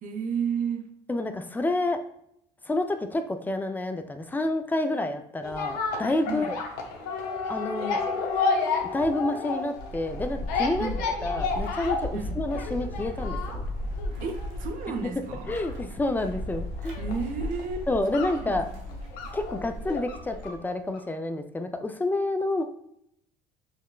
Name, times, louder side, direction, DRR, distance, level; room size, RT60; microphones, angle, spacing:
voice 1, 0.0-0.9 6.2-6.5 10.8-11.0 12.1-12.4 14.2-15.6 17.0-17.9 18.2-18.8, right 6 dB, 55° right, 6 dB, 0.6 m, -32 dB
voice 2, 1.1-2.0 2.6-6.6 7.5-8.0 8.8-10.9 11.2-13.6 15.5-17.0 17.9-18.7 19.3-22.6, left 2 dB, 10° left, 7 dB, 0.4 m, -29 dB
sound 1, 5.4-20.6 20.9-21.0, left 4 dB, 75° left, 0.7 m, -32 dB
sound 2, 9.8-20.6, left 1 dB, 90° right, 0.9 m, -36 dB
5.7 x 2.1 x 2.3 m, 0.74 s
supercardioid pair, 90°, 16 cm